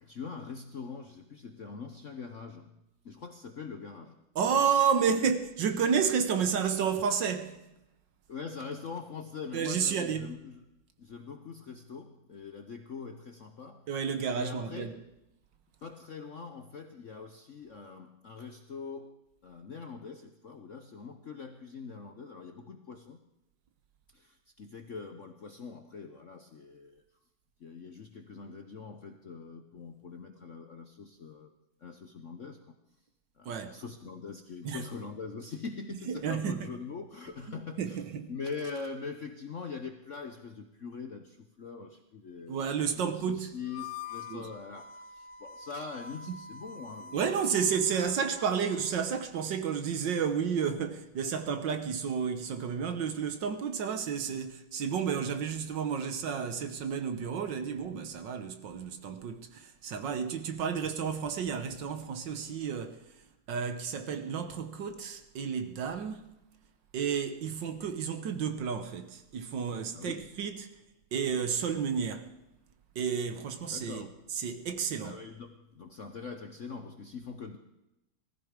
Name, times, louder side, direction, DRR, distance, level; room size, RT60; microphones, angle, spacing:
voice 1, 0.0-2.8 3.0-4.2 5.1-5.3 8.3-10.6 11.0-13.9 14.3-15.0 15.8-19.1 19.4-23.2 24.1-27.0 27.6-31.5 31.8-32.7 33.4-38.0 38.3-42.6 43.0-48.1 69.9-70.3 73.6-74.2 75.0-77.6, left 5 dB, 55° left, 0.9 m, -43 dB
voice 2, 4.4-7.6 9.5-10.3 13.9-15.0 33.5-33.7 34.6-34.8 36.1-36.7 37.8-38.3 42.5-43.6 44.3-44.5 46.3-46.4 47.1-63.0 63.5-66.3 66.9-70.7 71.1-72.3 73.0-74.1 74.3-75.2, right 7 dB, 65° right, 1.6 m, -31 dB
Harmonica, 43.6-49.3, left 5 dB, 85° left, 1.7 m, -46 dB
19.5 x 14.5 x 5.1 m
omnidirectional pair, 2.3 m